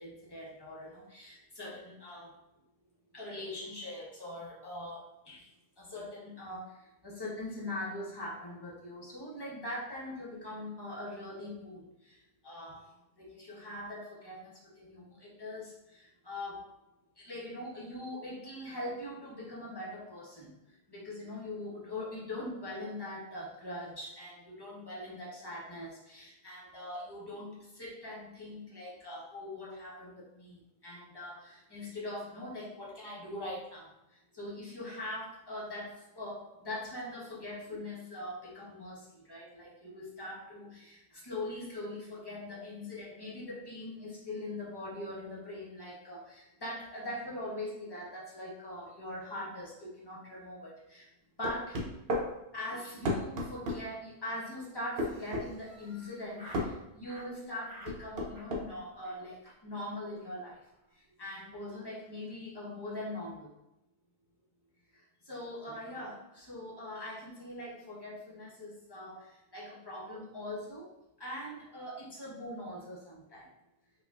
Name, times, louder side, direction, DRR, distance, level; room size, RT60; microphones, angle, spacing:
voice 1, 0.0-2.4 3.1-5.5 5.8-12.9 13.2-16.7 17.2-20.5 20.9-51.1 51.4-51.8 52.5-60.6 60.9-63.5 64.9-70.9 71.2-73.5, left 1 dB, 20° left, -6 dB, 0.8 m, -42 dB
sound 1, 51.4-52.3 53.0-53.8 55.0-55.5 56.5-56.7 57.9-58.7, left 1 dB, 60° right, 0.7 m, -32 dB
Laughter, 54.9-56.7 57.0-57.3 57.6-58.0 58.3-58.7 59.0-59.2 59.4-59.6 59.8-59.9 60.2-60.3 60.6-60.9, equal, 20° right, 0.8 m, -53 dB
4.7 x 2.4 x 2.4 m, 0.89 s
omnidirectional pair, 1.3 m